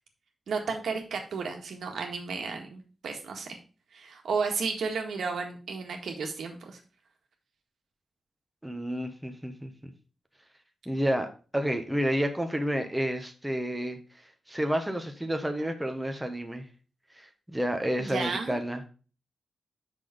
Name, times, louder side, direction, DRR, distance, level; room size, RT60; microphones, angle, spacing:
voice 1, 0.5-3.6 3.9-6.8 18.0-18.6, right 5 dB, 85° right, 3 dB, 1.7 m, -33 dB
voice 2, 8.6-9.9 10.9-14.0 14.5-16.7 17.2-18.9, equal, 5° right, 5 dB, 1.1 m, -30 dB
6.0 x 5.9 x 5.1 m, 0.37 s
wide cardioid pair, 105°, 0 cm